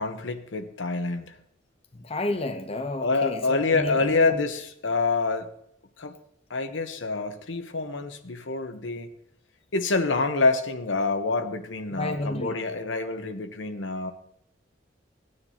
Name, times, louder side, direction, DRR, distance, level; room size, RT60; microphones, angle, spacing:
voice 1, 0.0-1.3 3.0-5.5 6.0-6.1 6.5-9.1 9.7-14.1, left 3 dB, 80° left, 7 dB, 1.0 m, -26 dB
voice 2, 1.9-4.4 11.9-12.6, left 2 dB, 30° left, 6 dB, 0.7 m, -31 dB
16.5 x 9.6 x 2.9 m, 0.72 s
head